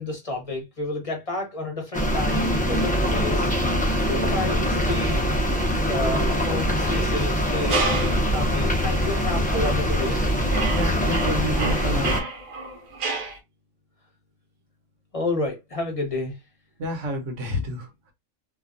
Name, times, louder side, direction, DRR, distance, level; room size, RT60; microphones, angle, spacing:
voice 1, 0.0-3.5 4.1-5.2 5.9-7.8 8.2-10.3 15.1-16.3, left 2 dB, 30° left, 1.0 m, -30 dB
sound 1, 1.9-12.2, equal, 15° left, 0.3 m, -23 dB
sound 2, 7.7-8.3 9.0-9.2 9.8-10.2 10.5-13.4, right 3 dB, 90° right, 1.3 m, -30 dB
voice 2, 10.7-12.2 16.8-18.1, equal, 70° right, 1.2 m, -30 dB
2.9 x 2.3 x 2.5 m
omnidirectional pair, 1.4 m